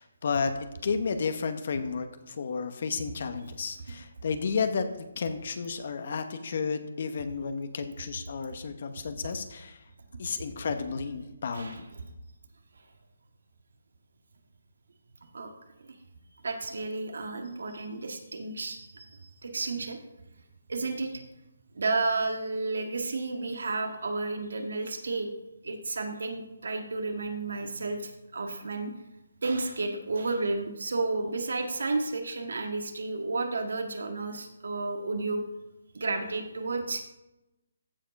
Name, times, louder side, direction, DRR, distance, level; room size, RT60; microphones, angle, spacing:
voice 1, 0.0-9.8 10.2-11.9, left 5 dB, 50° left, 8 dB, 0.9 m, -32 dB
voice 2, 16.4-20.0 20.7-21.2 21.7-25.3 25.6-28.9 29.4-35.4 35.9-37.0, right 3 dB, 75° right, 5 dB, 1.6 m, -32 dB
14.5 x 4.9 x 5.2 m, 0.96 s
hypercardioid pair, 165°, 0 cm